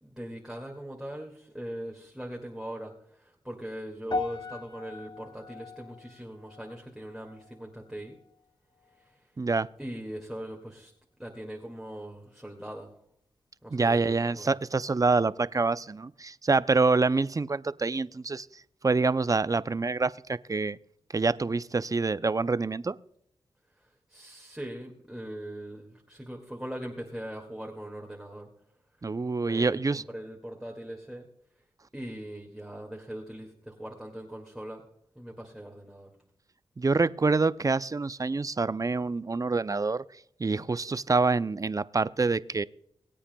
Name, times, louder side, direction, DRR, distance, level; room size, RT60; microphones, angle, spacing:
voice 1, 0.0-2.9 3.2-8.2 9.8-10.9 11.2-12.9 13.6-14.5 24.1-28.5 29.3-31.3 31.9-34.8 35.2-36.1, right 1 dB, 5° right, 0 dB, 2.1 m, -40 dB
sound 1, 4.1-8.5 8.8-9.1 9.8-9.9, left 4 dB, 40° left, 0.8 m, -40 dB
voice 2, 9.4-9.7 13.7-18.5 18.8-20.8 21.1-22.9 29.0-30.0 36.8-40.0 40.4-42.6, right 3 dB, 35° right, 16 dB, 0.5 m, -26 dB
22.5 x 8.6 x 2.3 m, 0.69 s
cardioid pair, 40°, 11 cm